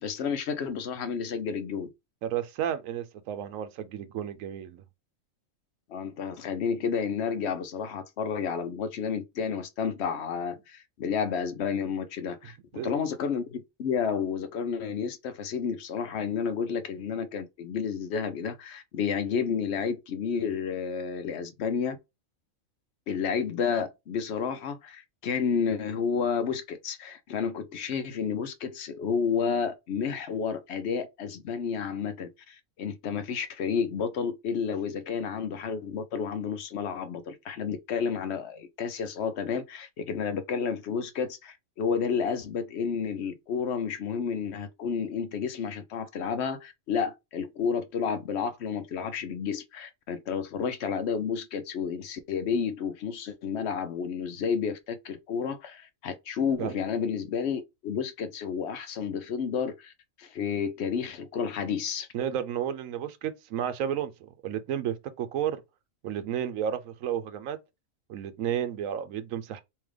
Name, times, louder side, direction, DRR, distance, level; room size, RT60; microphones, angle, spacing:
voice 1, 0.0-1.9 5.9-22.0 23.1-59.9 60.2-62.1, left 6 dB, 65° left, 0.8 m, -31 dB
voice 2, 2.2-4.8 12.7-12.9 56.6-56.7 62.1-65.6 66.0-67.6 68.1-69.6, right 9 dB, 85° right, 1.0 m, -32 dB
3.6 x 2.8 x 3.2 m
omnidirectional pair, 1.4 m